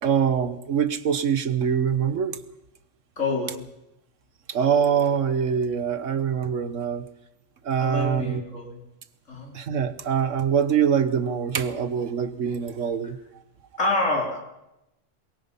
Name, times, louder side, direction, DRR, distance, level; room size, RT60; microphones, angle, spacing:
voice 1, 0.0-2.4 4.5-7.0 7.6-8.4 9.5-13.2, right 7 dB, 85° right, 12 dB, 1.5 m, -24 dB
voice 2, 3.2-3.6 7.8-8.8 9.3-9.6 13.8-14.4, left 2 dB, 90° left, 0 dB, 4.4 m, -27 dB
22.0 x 21.5 x 5.6 m, 0.90 s
omnidirectional pair, 1.3 m